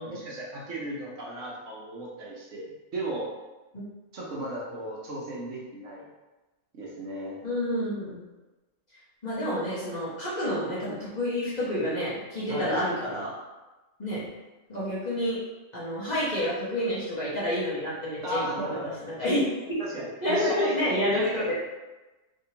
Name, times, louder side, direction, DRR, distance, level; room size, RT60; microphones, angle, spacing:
voice 1, 0.0-3.3 4.1-6.1 6.7-7.4 12.5-12.8 18.2-18.9 19.8-20.8 21.1-21.5, right 1 dB, 65° right, -4 dB, 1.1 m, -35 dB
voice 2, 7.4-8.2 9.2-13.3 14.0-14.2 14.7-15.4 15.7-19.4 20.2-21.5, equal, 35° left, -9 dB, 1.0 m, -29 dB
3.5 x 2.9 x 2.8 m, 1.1 s
omnidirectional pair, 1.4 m